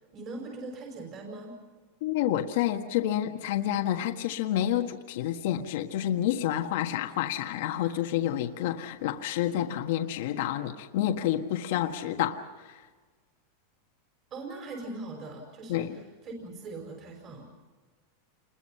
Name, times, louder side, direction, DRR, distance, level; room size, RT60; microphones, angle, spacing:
voice 1, 0.1-1.6 14.3-17.5, right 2 dB, 30° right, 1 dB, 5.1 m, -41 dB
voice 2, 2.0-12.8 15.7-16.0, left 11 dB, 65° left, 4 dB, 1.5 m, -29 dB
28.5 x 21.5 x 5.7 m, 1.4 s
supercardioid pair, 160°, 0 cm